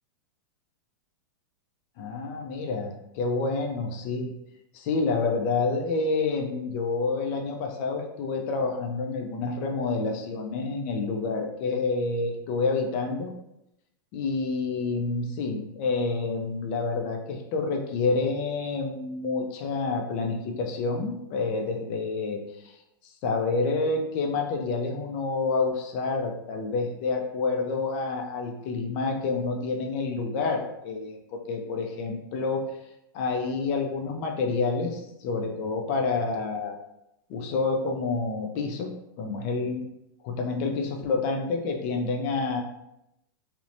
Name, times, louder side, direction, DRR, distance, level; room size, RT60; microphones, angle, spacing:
voice 1, 2.0-4.3 4.7-13.3 14.1-22.8 23.2-32.6 33.1-36.8 37.3-38.9 39.2-39.9 40.2-42.6, left 4 dB, 45° left, 2 dB, 0.5 m, -28 dB
2.7 x 2.1 x 2.5 m, 0.85 s
supercardioid pair, 140°, 12 cm